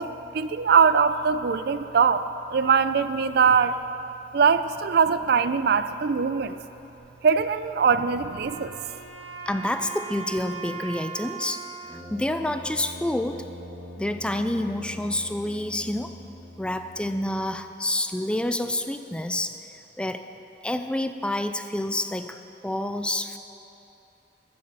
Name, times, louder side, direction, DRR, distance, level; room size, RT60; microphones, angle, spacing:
voice 1, 0.0-3.8 4.3-6.6 7.2-8.7, right 6 dB, 60° right, 12 dB, 0.4 m, -22 dB
Wind instrument woodwind instrument, 8.1-13.3, right 6 dB, 80° right, 1.7 m, -40 dB
voice 2, 9.5-11.6 12.1-13.4 14.0-16.1 16.6-19.6 20.0-20.2 20.6-22.4 22.6-23.4, left 1 dB, 5° left, 8 dB, 0.4 m, -28 dB
Brass instrument, 11.8-17.7, equal, 15° right, 1.9 m, -43 dB
14.0 x 7.0 x 6.8 m, 2.9 s
head